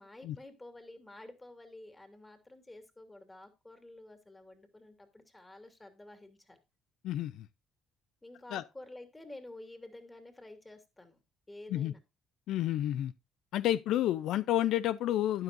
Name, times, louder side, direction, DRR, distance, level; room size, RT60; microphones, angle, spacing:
voice 1, 0.0-6.6 8.2-11.2 11.5-12.0, left 2 dB, 15° left, 3.0 m, -50 dB
voice 2, 7.0-7.5 8.5-8.6 11.7-11.9 12.5-13.1 13.5-15.4, left 13 dB, 75° left, 0.4 m, -30 dB
12.5 x 9.6 x 2.6 m
supercardioid pair, 75°, 0 cm